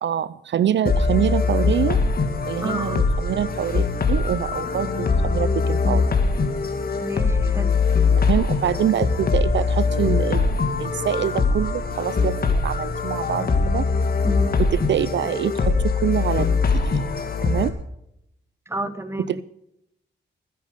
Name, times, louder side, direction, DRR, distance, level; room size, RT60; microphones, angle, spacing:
voice 1, 0.0-2.0 2.5-6.1 8.3-12.4 12.6-13.9 14.6-17.0 17.4-17.7 19.3-19.4, right 10 dB, 70° right, 18 dB, 0.5 m, -25 dB
sound 1, 0.9-17.7, left 4 dB, 50° left, 2.1 m, -22 dB
voice 2, 2.6-3.1 7.0-7.8 14.2-14.5 18.7-19.4, right 1 dB, 15° right, 12 dB, 1.3 m, -31 dB
20.0 x 10.5 x 5.1 m, 0.78 s
cardioid pair, 100°, 19 cm